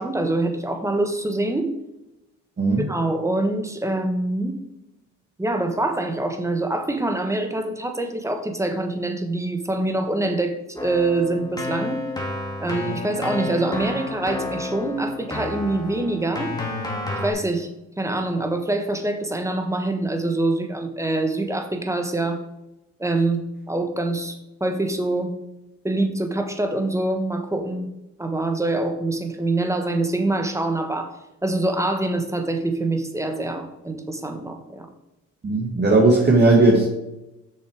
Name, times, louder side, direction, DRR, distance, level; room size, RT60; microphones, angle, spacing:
voice 1, 0.0-1.7 2.8-4.6 5.4-12.0 12.6-16.5 17.2-17.7 18.0-22.4 23.0-25.3 25.8-27.9 28.2-31.1 31.4-34.9, right 2 dB, 10° right, 6 dB, 1.3 m, -25 dB
Keyboard (musical), 10.8-17.3, left 2 dB, 15° left, 2.2 m, -30 dB
voice 2, 35.4-36.8, right 2 dB, 35° right, -3 dB, 2.0 m, -16 dB
6.8 x 6.4 x 4.9 m, 0.93 s
cardioid pair, 90°, 30 cm